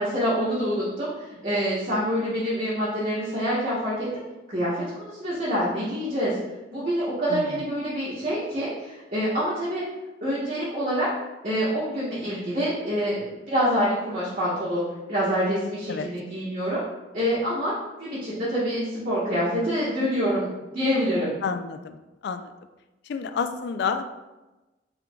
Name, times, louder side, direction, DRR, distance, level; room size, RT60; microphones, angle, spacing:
voice 1, 0.0-4.1 4.5-6.3 6.7-9.8 10.2-11.1 11.4-16.8 17.1-17.7 18.0-21.3, equal, 50° right, -9 dB, 1.1 m, -26 dB
voice 2, 7.3-7.6 15.9-16.1 21.4-22.0 22.2-22.5 23.1-24.1, left 5 dB, 65° left, 9 dB, 0.3 m, -29 dB
4.5 x 3.7 x 2.3 m, 1.1 s
head